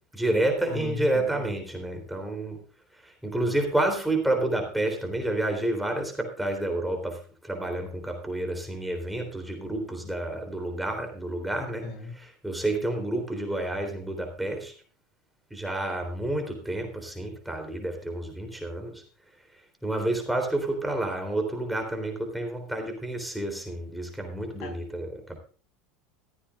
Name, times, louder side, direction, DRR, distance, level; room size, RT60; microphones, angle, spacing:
voice 1, 0.1-2.6 3.2-7.2 7.4-11.9 12.4-14.7 15.5-19.0 19.8-25.4, right 1 dB, 5° right, 3 dB, 3.5 m, -29 dB
voice 2, 0.7-1.5 11.8-12.2 24.6-24.7, left 3 dB, 60° left, 3 dB, 6.3 m, -36 dB
15.0 x 14.0 x 2.5 m, 0.39 s
figure-of-eight pair, 75°, 0 cm